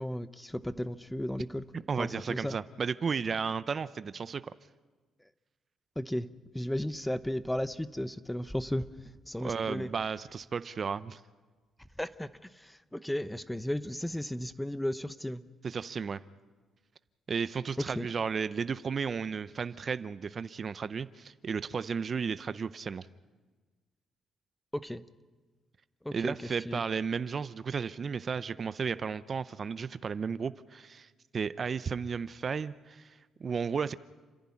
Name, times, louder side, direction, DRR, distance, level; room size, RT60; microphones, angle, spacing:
voice 1, 0.0-1.6 2.0-2.6 6.0-6.3 6.5-9.9 12.0-15.4 17.9-18.1 24.7-25.0 26.0-26.8, left 1 dB, 5° left, 14 dB, 0.9 m, -35 dB
voice 2, 1.9-4.4 9.4-11.2 15.6-16.2 17.3-23.1 26.1-33.9, right 6 dB, 45° right, 15 dB, 0.6 m, -34 dB
30.0 x 11.0 x 9.9 m, 1.3 s
cardioid pair, 90°, 0 cm